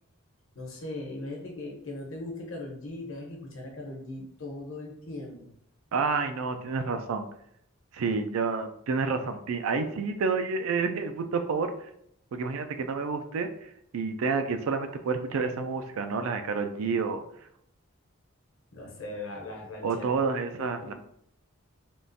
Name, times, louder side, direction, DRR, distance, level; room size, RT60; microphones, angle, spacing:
voice 1, 0.5-5.5 18.7-20.3 20.6-20.9, left 2 dB, 70° left, -1 dB, 0.9 m, -39 dB
voice 2, 5.9-7.3 7.9-11.7 12.3-13.5 13.9-17.2 19.8-20.9, right 4 dB, 80° right, 8 dB, 0.4 m, -29 dB
3.5 x 2.5 x 2.6 m, 0.73 s
head